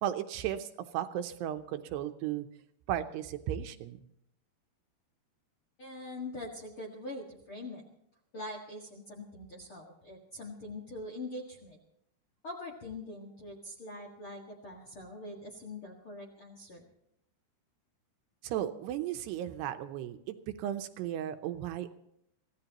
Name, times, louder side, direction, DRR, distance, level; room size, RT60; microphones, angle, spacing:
voice 1, 0.0-2.5 2.9-4.0 18.4-21.9, right 11 dB, 80° right, 8 dB, 2.7 m, -35 dB
voice 2, 5.8-7.8 8.3-11.8 12.4-16.8, left 2 dB, 50° left, 0 dB, 1.6 m, -43 dB
24.5 x 16.0 x 3.0 m, 0.76 s
omnidirectional pair, 5.1 m